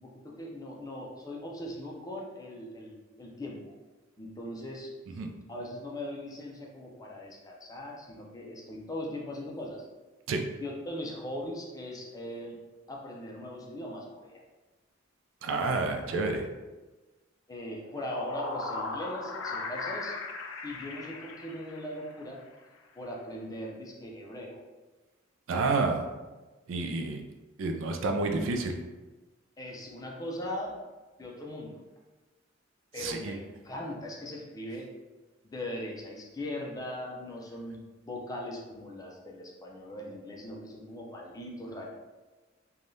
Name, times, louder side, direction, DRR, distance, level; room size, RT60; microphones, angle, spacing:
voice 1, 0.0-3.6 4.2-4.9 5.5-9.8 10.6-12.6 12.9-14.4 17.5-20.2 20.6-22.4 23.0-24.6 29.6-30.7 31.2-31.8 32.9-34.9 35.5-37.8 38.0-41.9, left 1 dB, 20° left, -1 dB, 0.5 m, -39 dB
voice 2, 15.4-16.4 25.5-26.0 26.7-27.2 27.6-28.7 33.0-33.4, right 3 dB, 80° right, 4 dB, 0.4 m, -29 dB
sound 1, 17.8-22.2, left 3 dB, 85° left, 0.4 m, -38 dB
3.3 x 2.3 x 2.6 m, 1.2 s
head